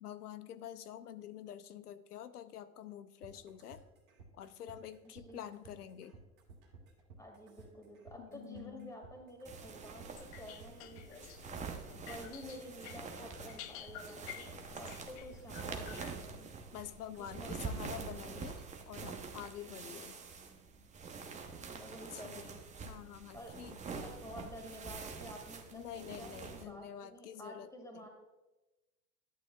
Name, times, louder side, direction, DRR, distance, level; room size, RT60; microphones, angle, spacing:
voice 1, 0.0-3.8 4.4-6.2 8.2-8.9 16.7-20.2 22.1-22.5 22.8-24.1 25.7-27.7 28.0-28.1, left 10 dB, 90° left, 14 dB, 0.6 m, -47 dB
sound 1, 3.2-18.7, right 4 dB, 65° right, 2.2 m, -57 dB
voice 2, 5.0-5.4 7.2-11.6 11.9-16.5 17.3-17.5 21.4-22.6 23.3-23.5 24.0-28.1, equal, 5° left, 1 dB, 1.9 m, -51 dB
sound 2, 9.4-26.6, right 5 dB, 15° right, 0.8 m, -46 dB
sound 3, 10.1-16.3, left 11 dB, 35° left, 0.4 m, -52 dB
11.0 x 8.9 x 2.3 m, 1.1 s
hypercardioid pair, 100°, 45 cm